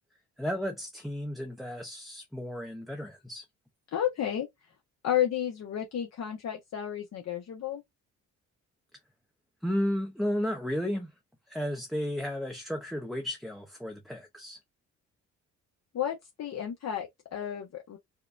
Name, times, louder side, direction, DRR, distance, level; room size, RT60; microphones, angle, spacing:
voice 1, 0.4-3.4 9.6-11.1 11.5-14.6, equal, ahead, 0.6 m, -33 dB
voice 2, 3.9-4.5 5.0-7.8 15.9-18.0, left 10 dB, 60° left, 0.9 m, -32 dB
4.8 x 2.2 x 2.4 m
cardioid pair, 90°, 30 cm